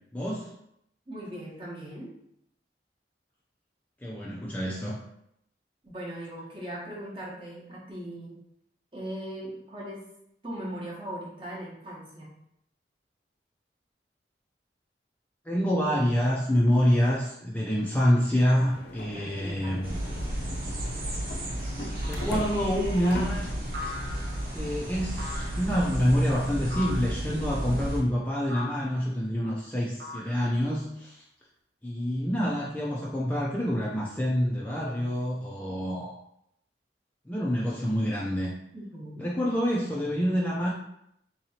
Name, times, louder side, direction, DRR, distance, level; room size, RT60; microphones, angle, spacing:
voice 1, 0.1-0.5 4.0-5.0 15.5-20.0 22.0-23.5 24.5-31.2 31.8-36.1 37.3-38.5 39.2-40.7, equal, 10° left, -5 dB, 0.4 m, -27 dB
voice 2, 1.1-2.1 5.8-8.4 8.9-10.1 10.4-12.3 19.1-19.9 38.7-39.3, right 1 dB, 30° right, -4 dB, 1.0 m, -39 dB
sound 1, 18.6-25.9, left 1 dB, 60° left, 0.5 m, -41 dB
sound 2, 19.8-28.0, equal, 55° right, 0.9 m, -33 dB
sound 3, 22.0-22.4 23.7-24.5 25.2-25.8 26.7-27.2 28.5-29.0 30.0-30.7, left 3 dB, 70° right, 0.5 m, -40 dB
3.8 x 3.0 x 2.8 m, 0.76 s
head